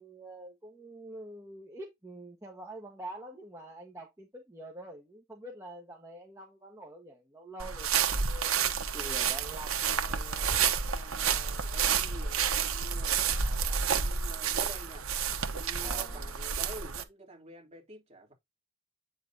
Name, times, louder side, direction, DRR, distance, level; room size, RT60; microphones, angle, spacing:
voice 1, 0.0-9.8 15.8-16.3, right 1 dB, 15° right, 1.4 m, -46 dB
sound 1, 7.6-17.0, right 7 dB, 85° right, 1.1 m, -30 dB
voice 2, 9.8-15.0 15.5-18.3, right 1 dB, 30° right, 3.2 m, -49 dB
8.8 x 5.3 x 2.8 m
head